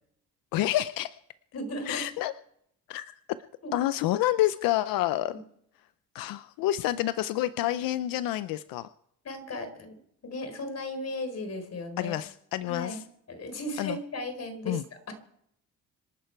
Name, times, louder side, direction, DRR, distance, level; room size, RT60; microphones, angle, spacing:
voice 1, 0.5-1.1 1.9-2.3 2.9-3.4 3.7-5.4 6.1-8.9 12.0-13.0 13.8-14.0 14.7-14.8, left 14 dB, 90° left, 13 dB, 0.6 m, -28 dB
voice 2, 1.5-2.1 3.6-3.7 5.3-5.4 9.2-12.2 12.7-13.0 13.3-15.1, left 1 dB, 50° left, 8 dB, 4.3 m, -36 dB
26.5 x 11.5 x 4.6 m, 0.74 s
cardioid pair, 85°, 33 cm